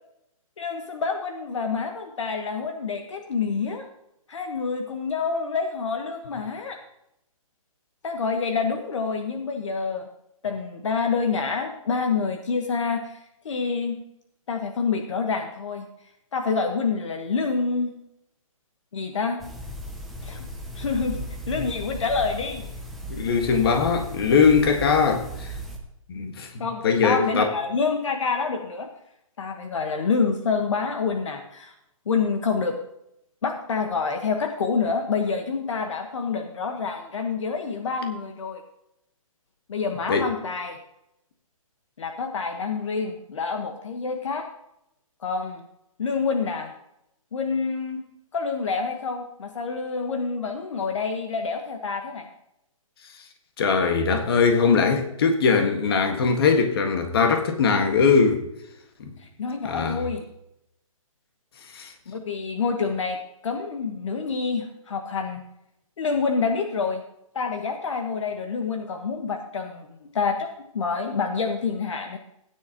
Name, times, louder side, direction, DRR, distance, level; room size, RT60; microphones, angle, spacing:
voice 1, 0.6-3.9 4.3-6.8 8.0-10.1 10.4-13.2 13.4-14.0 14.5-15.9 16.3-17.9 18.9-19.4 20.2-20.4 20.8-21.2 21.5-22.7 26.6-28.9 29.4-31.7 32.1-32.8 33.4-38.6 39.7-40.8 42.0-44.5 45.2-45.6 46.0-46.7 47.3-48.0 48.3-52.3 59.4-60.2 62.1-63.2 63.4-65.4 66.0-67.0 67.3-69.9 70.1-72.2, left 5 dB, 60° left, 1.4 m, -27 dB
sound 1, 19.4-25.8, right 1 dB, ahead, 0.4 m, -36 dB
voice 2, 23.1-25.5 26.1-27.5 40.1-40.3 53.6-58.4 59.0-59.1 59.6-60.0 61.7-61.9, left 5 dB, 40° left, 1.6 m, -21 dB
16.0 x 9.8 x 3.0 m
hypercardioid pair, 165°, 18 cm